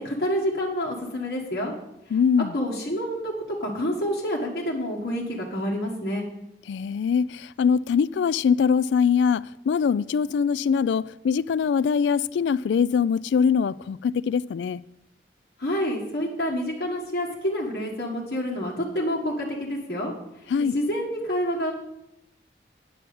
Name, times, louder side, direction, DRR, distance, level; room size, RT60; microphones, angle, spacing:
voice 1, 0.0-1.7 2.5-3.3 3.6-6.3 15.6-20.1 20.7-21.7, equal, 55° left, 1.6 m, -28 dB
voice 2, 2.1-2.6 6.7-14.8 20.5-20.8, left 6 dB, 85° left, 0.3 m, -23 dB
9.3 x 5.9 x 7.0 m
head